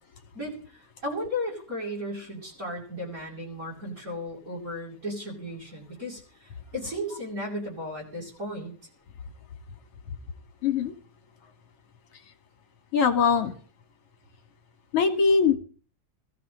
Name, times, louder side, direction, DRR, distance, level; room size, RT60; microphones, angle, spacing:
voice 1, 1.0-8.7, left 1 dB, 25° right, -3 dB, 8.6 m, -35 dB
voice 2, 10.6-10.9 12.9-13.5 14.9-15.5, left 5 dB, 50° left, 9 dB, 3.3 m, -21 dB
21.5 x 15.0 x 3.9 m, 0.40 s
omnidirectional pair, 3.3 m